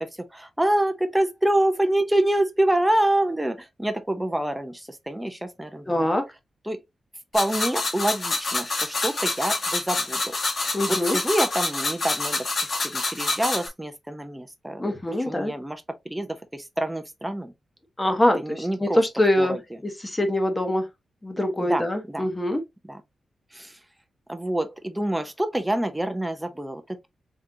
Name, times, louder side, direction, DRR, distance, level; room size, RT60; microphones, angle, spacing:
voice 1, 0.3-6.1 6.7-6.8 7.3-15.0 15.3-17.5 18.4-19.0 19.4-19.6 21.6-22.3 22.8-23.0 23.5-23.8 24.3-27.1, right 1 dB, 10° right, 0.6 m, -27 dB
voice 2, 5.9-6.3 10.7-11.2 14.8-15.5 18.0-19.6 19.8-20.9 21.2-22.6, left 1 dB, 15° left, 1.0 m, -24 dB
sound 1, 7.3-13.7, left 3 dB, 45° left, 1.3 m, -27 dB
3.7 x 3.5 x 2.7 m
wide cardioid pair, 130°, 0 cm